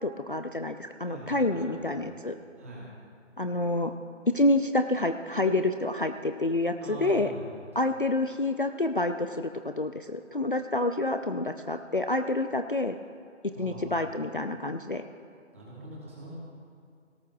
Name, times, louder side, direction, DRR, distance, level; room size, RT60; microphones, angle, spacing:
voice 1, 0.0-2.4 3.4-3.9 4.3-7.3 7.8-13.0 13.6-15.0, left 2 dB, 45° left, 8 dB, 0.5 m, -28 dB
voice 2, 1.0-2.1 2.6-2.9 6.8-7.6 13.5-14.0 15.5-16.4, right 1 dB, 10° right, -6 dB, 1.5 m, -43 dB
22.0 x 17.5 x 2.4 m, 2.5 s
figure-of-eight pair, 165°, 37 cm